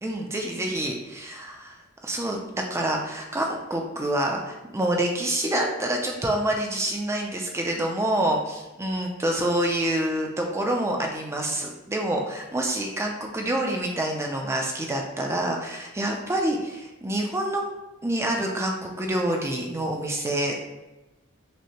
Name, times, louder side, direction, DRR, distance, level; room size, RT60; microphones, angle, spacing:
voice 1, 0.0-1.8 2.0-17.6 18.0-20.5, right 1 dB, 15° right, 1 dB, 0.4 m, -27 dB
6.2 x 2.1 x 2.9 m, 0.99 s
head